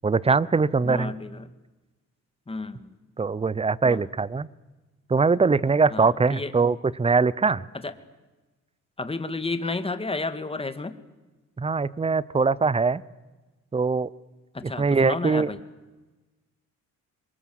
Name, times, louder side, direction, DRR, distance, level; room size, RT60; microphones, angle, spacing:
voice 1, 0.0-1.1 3.2-4.5 5.1-7.6 11.6-13.0 13.7-14.1 14.8-15.5, right 4 dB, 20° right, 20 dB, 0.8 m, -22 dB
voice 2, 0.8-1.5 2.5-3.0 3.8-4.0 5.9-6.5 7.8-7.9 9.0-11.0 14.5-15.6, left 3 dB, 20° left, 11 dB, 2.0 m, -31 dB
27.5 x 23.0 x 7.8 m, 1.2 s
cardioid pair, 90°, 30 cm